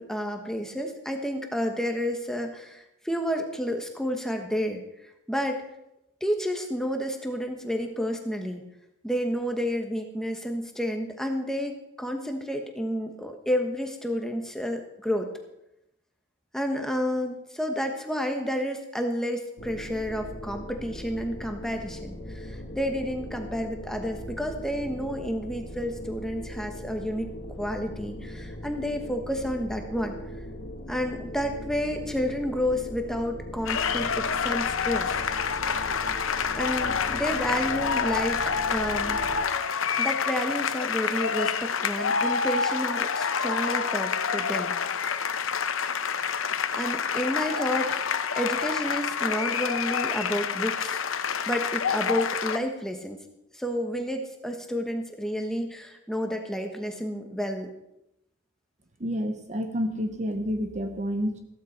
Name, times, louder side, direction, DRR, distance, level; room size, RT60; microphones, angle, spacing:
voice 1, 0.0-4.8 5.3-5.6 6.2-8.6 9.0-15.3 16.5-27.3 27.6-30.2 30.9-35.2 36.5-39.2 40.0-44.7 46.8-48.0 48.4-51.0 51.5-53.2 53.5-57.7, equal, ahead, 4 dB, 1.3 m, -30 dB
sound 1, 19.6-39.4, equal, 45° left, 1.9 m, -40 dB
sound 2, 33.7-52.6, left 6 dB, 65° left, 0.8 m, -28 dB
voice 2, 59.0-61.4, equal, 35° right, 6 dB, 0.9 m, -29 dB
15.5 x 13.0 x 4.3 m, 0.87 s
head